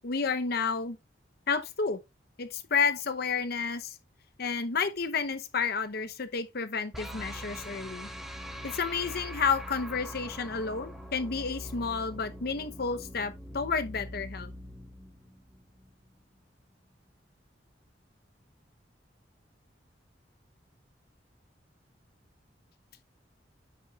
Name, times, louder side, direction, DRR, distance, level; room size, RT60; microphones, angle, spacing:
voice 1, 0.0-1.0 1.5-2.0 2.4-3.9 4.4-8.1 8.6-14.5, left 5 dB, 60° left, 0.8 m, -31 dB
sound 1, 6.9-16.0, equal, ahead, 0.9 m, -42 dB
8.9 x 7.2 x 2.4 m
head